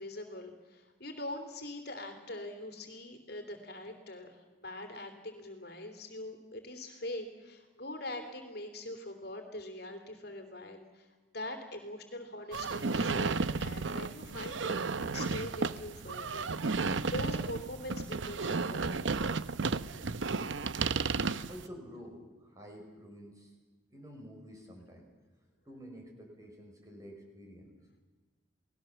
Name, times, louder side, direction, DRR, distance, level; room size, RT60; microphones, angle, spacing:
voice 1, 0.0-19.0, left 1 dB, 55° left, 6 dB, 3.2 m, -43 dB
sound 1, 12.5-21.7, right 4 dB, 70° right, 0.8 m, -33 dB
voice 2, 21.4-23.5 23.9-25.1 25.7-27.8, equal, 15° right, 2 dB, 5.4 m, -50 dB
30.0 x 19.0 x 7.2 m, 1.3 s
head